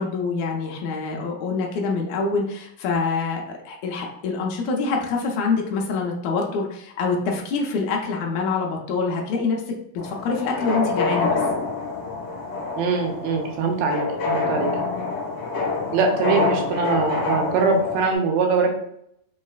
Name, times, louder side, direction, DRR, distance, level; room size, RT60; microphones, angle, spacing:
voice 1, 0.0-9.6 10.0-11.4, left 4 dB, 85° left, 0 dB, 1.6 m, -25 dB
sound 1, 10.0-18.1, left 3 dB, 60° left, 2.2 m, -26 dB
voice 2, 12.8-14.7 15.9-18.7, right 4 dB, 80° right, 2 dB, 2.3 m, -22 dB
5.4 x 3.0 x 2.3 m, 0.73 s
omnidirectional pair, 4.1 m